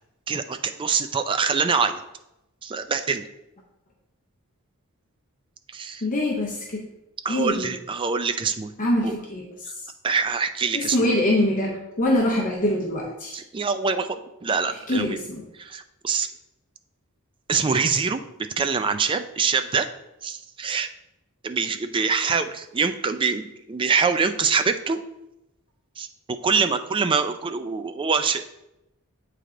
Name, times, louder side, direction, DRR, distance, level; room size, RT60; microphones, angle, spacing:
voice 1, 0.3-2.0 2.6-3.3 5.7-6.0 7.2-8.7 9.0-9.1 10.0-11.1 13.3-15.2 15.6-16.3 17.5-18.2 18.6-19.9 20.2-20.9 21.4-25.0 26.0-28.4, right 5 dB, 25° right, 9 dB, 0.3 m, -24 dB
voice 2, 6.0-6.8 7.3-7.7 8.8-9.4 10.7-13.4 14.9-15.4, left 1 dB, 35° left, -2 dB, 0.7 m, -24 dB
7.9 x 3.3 x 3.8 m, 0.89 s
head